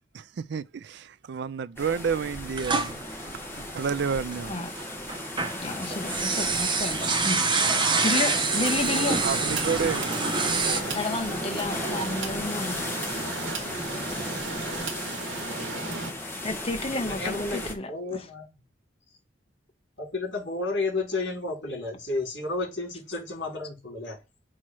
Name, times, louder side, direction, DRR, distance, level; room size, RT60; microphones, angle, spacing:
voice 1, 0.1-3.0 3.5-4.6 9.2-10.1, right 6 dB, 60° right, 0.4 m, -30 dB
sound 1, 1.8-17.7, left 1 dB, 15° left, 1.3 m, -35 dB
sound 2, 2.6-4.4 4.8-10.8, right 4 dB, 25° right, 0.9 m, -26 dB
voice 2, 5.6-7.4 8.0-9.2 10.9-12.9 16.4-18.2, left 2 dB, 30° left, 1.1 m, -31 dB
sound 3, 8.5-16.1, right 2 dB, 80° right, 1.7 m, -34 dB
voice 3, 16.9-18.5 20.0-24.2, left 3 dB, 65° left, 4.1 m, -32 dB
6.2 x 3.1 x 5.8 m
head